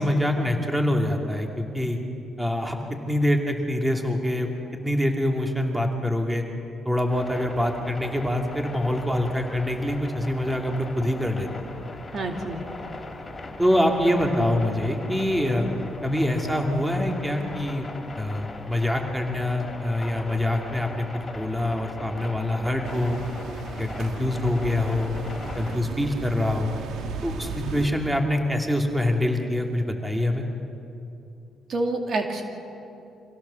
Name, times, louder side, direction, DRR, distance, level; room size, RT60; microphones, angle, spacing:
voice 1, 0.0-2.0 2.4-2.8 3.1-6.4 6.8-11.5 13.6-15.7 16.0-17.9 18.2-23.2 23.8-25.1 25.6-26.7 27.2-30.4, left 1 dB, 10° right, 2 dB, 2.6 m, -25 dB
sound 1, 7.1-25.8, left 2 dB, 25° left, 3.3 m, -39 dB
voice 2, 12.1-12.6 31.7-32.4, right 2 dB, 55° right, 3 dB, 2.5 m, -27 dB
sound 2, 22.8-27.9, right 5 dB, 75° right, 1.7 m, -36 dB
25.5 x 16.5 x 7.1 m, 2.7 s
cardioid pair, 85°, 0 cm